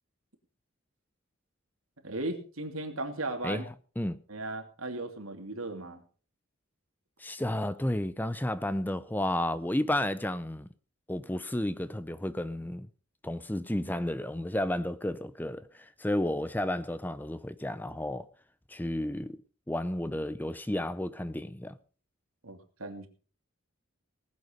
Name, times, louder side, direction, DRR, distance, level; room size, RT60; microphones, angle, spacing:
voice 1, 2.0-3.7 4.3-6.0 22.4-23.1, right 2 dB, 85° right, 2.7 m, -36 dB
voice 2, 7.2-10.7 11.1-12.9 13.2-18.3 18.7-19.4 19.7-21.8, left 1 dB, 10° left, 0.6 m, -32 dB
19.5 x 8.0 x 5.2 m
head